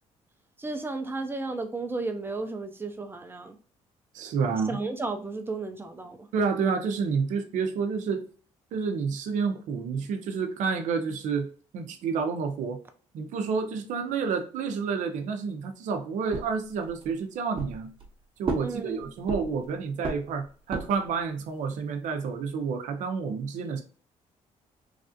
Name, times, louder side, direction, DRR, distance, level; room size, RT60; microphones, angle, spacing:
voice 1, 0.6-3.6 4.7-6.3 18.6-19.1, right 3 dB, 15° right, 0.6 m, -33 dB
voice 2, 4.1-4.8 6.3-8.2 8.7-11.5 11.7-12.8 13.1-17.9 18.4-23.8, right 5 dB, 75° right, 0.6 m, -29 dB
putting to go coffee cup down, 16.3-17.1 17.6-18.1 18.4-19.7 20.0-21.1, right 4 dB, 40° right, 0.9 m, -34 dB
3.3 x 2.4 x 2.6 m
cardioid pair, 95°, 13 cm